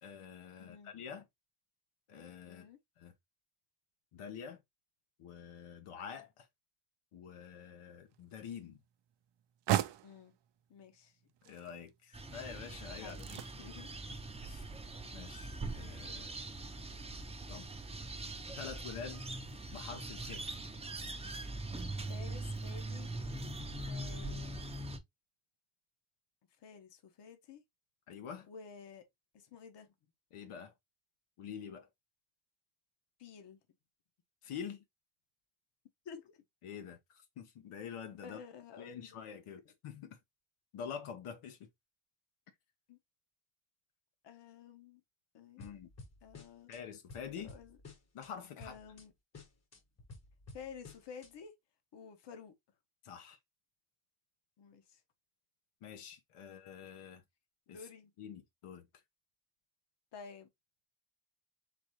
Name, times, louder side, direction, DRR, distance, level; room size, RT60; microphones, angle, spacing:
voice 1, 0.0-1.3 2.1-2.7 3.0-3.1 4.1-4.6 5.2-6.5 7.1-8.8 11.4-13.4 14.4-14.7 15.1-16.3 17.5-17.7 18.6-19.2 19.7-20.5 28.1-28.5 30.3-30.7 31.4-31.9 34.4-34.8 36.6-38.4 38.8-40.2 40.7-41.7 45.6-45.9 46.7-47.5 48.1-48.8 53.0-53.4 55.8-57.2 57.7-57.9 58.2-58.9, left 7 dB, 80° left, 1.1 m, -47 dB
voice 2, 0.6-0.9 2.5-2.8 10.0-10.3 10.7-11.1 13.0-13.2 13.6-13.9 22.1-23.1 23.9-24.7 26.6-27.6 28.5-29.0 29.3-29.9 33.2-33.6 36.0-36.4 38.2-39.2 42.9-43.0 44.2-45.0 45.3-45.7 46.2-46.7 47.4-47.8 48.6-49.1 50.5-51.5 51.9-52.5 54.6-55.0 57.7-58.1 60.1-60.5, left 6 dB, 55° left, 1.1 m, -51 dB
sound 1, 7.9-21.1, right 12 dB, 60° right, 0.5 m, -44 dB
sound 2, 12.1-25.0, right 2 dB, 15° right, 0.6 m, -42 dB
sound 3, 45.6-46.8 47.1-48.3 48.6-49.0 49.3-51.3, left 3 dB, 30° left, 1.0 m, -53 dB
4.0 x 3.7 x 3.0 m
cardioid pair, 145°, 50 cm